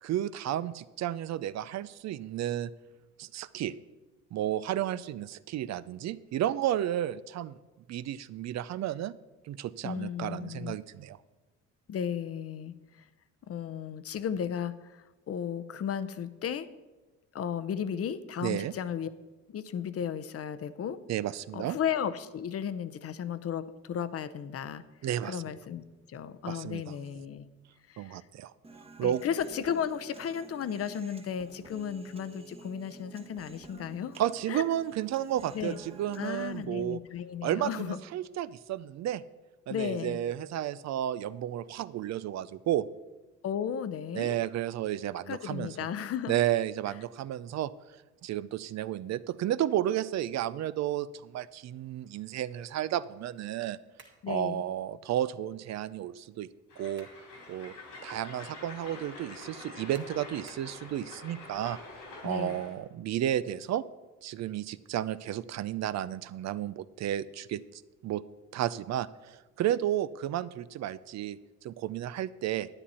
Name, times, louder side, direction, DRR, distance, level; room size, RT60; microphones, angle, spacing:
voice 1, 0.0-2.7 3.2-3.7 4.3-7.6 7.9-9.1 9.5-11.2 18.4-18.7 21.1-21.8 25.0-25.4 26.5-26.8 28.0-28.5 29.0-29.2 34.2-37.0 37.4-39.2 39.7-42.9 44.1-45.9 46.3-47.7 48.2-53.8 54.3-56.5 56.8-57.1 57.5-57.7 58.0-61.8 62.2-63.8 64.2-68.2 68.5-72.7, right 12 dB, 60° right, 16 dB, 0.5 m, -32 dB
voice 2, 9.8-10.7 11.9-12.7 13.5-16.7 17.3-19.1 19.5-21.0 21.5-24.8 25.2-27.5 27.9-28.2 29.0-34.2 34.5-34.6 35.5-35.8 36.2-38.0 39.7-40.2 43.4-44.4 45.3-46.4 54.2-54.6 62.2-62.6, left 8 dB, 50° left, 14 dB, 0.7 m, -34 dB
Human voice, 28.6-36.7, right 3 dB, 20° right, 1.0 m, -51 dB
sound 1, 54.0-54.3 56.6-57.3 57.7-57.8 59.9-60.8, right 4 dB, 40° right, 2.0 m, -56 dB
Train, 56.7-62.8, left 3 dB, 90° left, 3.3 m, -47 dB
10.0 x 9.9 x 4.2 m, 1.2 s
cardioid pair, 90°, 30 cm